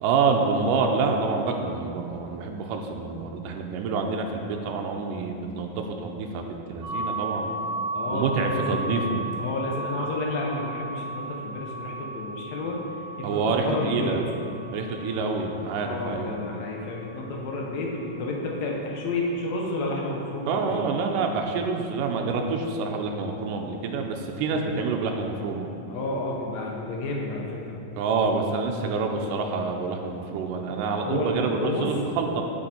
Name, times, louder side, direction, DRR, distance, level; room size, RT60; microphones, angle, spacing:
voice 1, 0.0-7.5 8.1-9.2 13.2-14.2 14.7-16.4 20.5-25.7 28.0-32.4, right 4 dB, 85° right, 2 dB, 1.9 m, -27 dB
sound 1, 6.8-18.5, right 2 dB, 25° right, 0.8 m, -36 dB
voice 2, 7.9-9.0 9.4-12.8 13.2-14.2 15.8-20.9 25.9-27.8 31.0-31.9, left 2 dB, 70° left, -2 dB, 1.7 m, -31 dB
7.8 x 6.9 x 4.3 m, 3.0 s
omnidirectional pair, 4.2 m